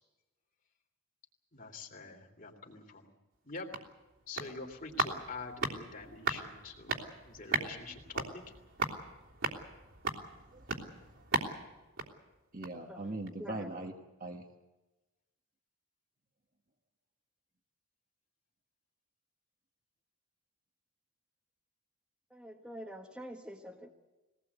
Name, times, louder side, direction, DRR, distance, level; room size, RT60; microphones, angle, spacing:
voice 1, 1.5-3.1 3.4-3.7 4.3-8.6, left 4 dB, 40° left, 3 dB, 3.0 m, -46 dB
sound 1, 3.3-12.9 13.2-13.3, right 3 dB, 60° right, 3.3 m, -38 dB
voice 2, 10.4-11.3 12.5-13.9 14.2-14.5, right 2 dB, 40° right, 2 dB, 1.5 m, -42 dB
voice 3, 13.4-13.7 22.3-23.9, equal, 5° right, -1 dB, 1.5 m, -46 dB
22.5 x 18.5 x 8.2 m, 1.1 s
head